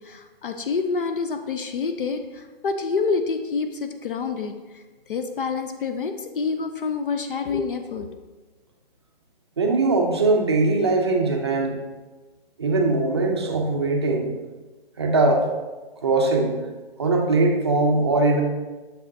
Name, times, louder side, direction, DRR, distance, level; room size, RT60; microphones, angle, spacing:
voice 1, 0.0-8.2, left 4 dB, 60° left, 7 dB, 0.5 m, -27 dB
voice 2, 9.6-11.8 12.6-14.3 15.0-15.5 16.0-16.5 17.0-18.4, right 3 dB, 25° right, 1 dB, 0.5 m, -21 dB
6.8 x 6.0 x 2.7 m, 1.2 s
hypercardioid pair, 175°, 31 cm